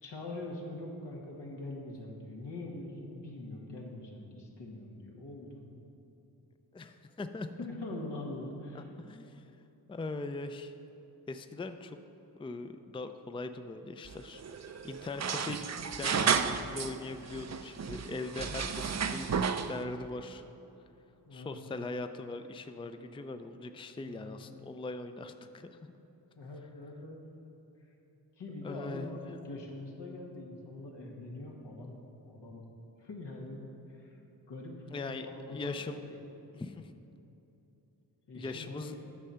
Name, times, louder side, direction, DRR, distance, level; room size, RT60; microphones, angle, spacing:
voice 1, 0.0-5.6 7.6-8.9 21.3-21.6 24.0-24.3 26.4-27.2 28.4-31.9 32.2-32.6 33.0-34.2 34.5-36.2 38.3-39.1, left 2 dB, 80° left, -1 dB, 1.6 m, -43 dB
voice 2, 6.7-7.5 8.7-9.4 9.9-10.7 11.3-12.0 12.4-15.7 16.0-19.3 19.7-20.4 21.3-26.0 28.6-29.1 34.9-36.0 36.5-36.9 38.3-38.9, left 3 dB, 15° left, 9 dB, 0.4 m, -41 dB
sound 1, 14.0-17.0 17.3-19.8, right 6 dB, 40° right, 0.5 m, -32 dB
10.0 x 6.3 x 5.7 m, 2.9 s
cardioid pair, 50°, 41 cm